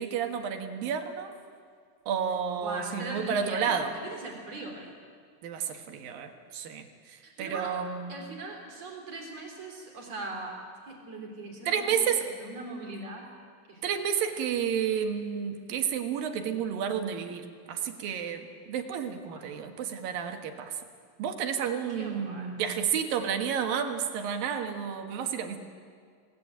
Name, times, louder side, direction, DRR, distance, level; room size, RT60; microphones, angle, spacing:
voice 1, 0.0-1.3 2.1-3.9 5.4-8.2 11.7-12.3 13.8-17.4 17.7-18.4 18.7-20.8 21.2-25.6, right 7 dB, 85° right, 6 dB, 3.3 m, -31 dB
voice 2, 2.6-4.9 7.2-10.6 10.8-13.3 13.7-13.8 19.2-19.5 21.9-22.5, right 2 dB, 50° right, 0 dB, 4.6 m, -40 dB
26.5 x 18.5 x 9.0 m, 2.1 s
omnidirectional pair, 3.9 m